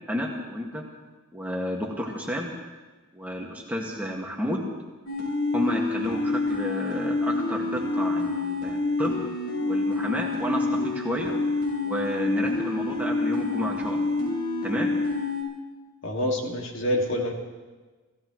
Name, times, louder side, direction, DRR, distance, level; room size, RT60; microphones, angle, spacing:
voice 1, 0.1-0.9 1.3-2.5 3.1-4.7 5.5-9.2 9.6-11.3 11.8-14.1 14.6-14.9, equal, 5° right, -2 dB, 1.8 m, -31 dB
sound 1, 5.1-15.4, left 3 dB, 90° left, 6.3 m, -27 dB
voice 2, 16.0-17.3, left 1 dB, 55° left, 1 dB, 2.2 m, -26 dB
28.5 x 16.0 x 3.1 m, 1.3 s
head